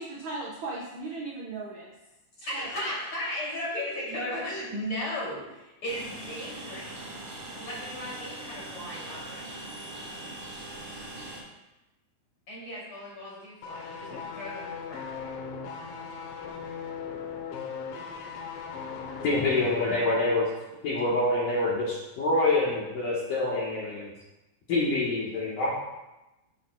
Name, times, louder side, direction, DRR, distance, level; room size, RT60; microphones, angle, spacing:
voice 1, 0.0-1.9 2.5-2.7, right 3 dB, 80° right, -5 dB, 1.6 m, -37 dB
voice 2, 2.4-6.9 7.5-9.6 12.5-15.4, left 1 dB, 35° left, -6 dB, 3.2 m, -36 dB
Train, 5.9-11.4, right 1 dB, 50° right, 2.9 m, -41 dB
sound 1, 13.6-20.3 20.6-20.7, left 6 dB, 80° left, 2.0 m, -38 dB
voice 3, 19.2-20.5 20.8-24.1 24.7-25.8, left 2 dB, 60° left, -7 dB, 2.4 m, -26 dB
13.5 x 7.7 x 2.4 m, 0.99 s
omnidirectional pair, 5.4 m